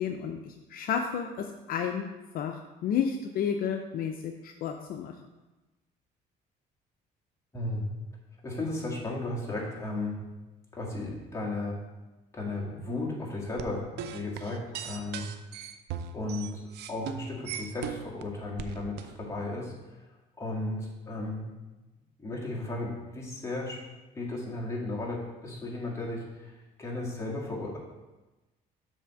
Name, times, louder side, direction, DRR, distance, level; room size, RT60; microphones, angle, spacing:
voice 1, 0.0-2.1 2.3-5.2, left 7 dB, 60° left, 5 dB, 0.5 m, -31 dB
voice 2, 7.5-7.9 8.4-10.2 10.7-11.8 12.3-13.8 14.1-15.3 16.1-16.6 16.9-19.7 20.4-21.5 22.2-23.8 24.1-26.5 26.8-27.8, left 2 dB, 15° left, -3 dB, 1.9 m, -34 dB
sound 1, 13.6-18.2 18.6-19.1, right 8 dB, 80° right, 0.5 m, -38 dB
7.3 x 3.4 x 5.8 m, 1.1 s
cardioid pair, 110°, 17 cm